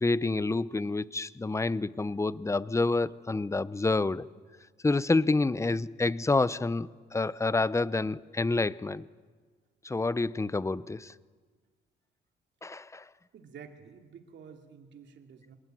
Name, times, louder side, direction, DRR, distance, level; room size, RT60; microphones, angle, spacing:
voice 1, 0.0-4.3 4.8-9.1 9.8-11.1 12.6-13.1, left 3 dB, 15° left, 0.7 m, -28 dB
voice 2, 13.3-15.6, right 6 dB, 65° right, 2.6 m, -50 dB
25.5 x 21.0 x 9.2 m
cardioid pair, 90°, 20 cm